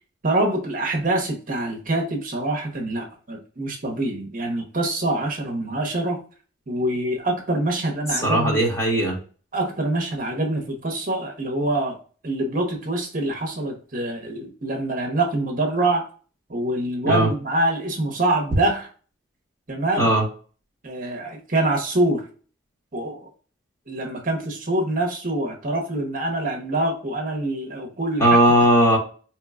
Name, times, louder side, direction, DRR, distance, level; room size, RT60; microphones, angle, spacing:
voice 1, 0.2-6.2 6.7-8.6 9.5-12.0 12.2-16.0 16.5-18.9 19.7-20.1 20.8-22.3 22.9-23.3 23.9-28.4, right 2 dB, 45° right, 2 dB, 0.8 m, -25 dB
voice 2, 8.2-9.2 17.0-17.3 20.0-20.2 28.2-29.0, right 1 dB, 15° left, -2 dB, 1.2 m, -18 dB
4.5 x 3.0 x 2.3 m, 0.40 s
head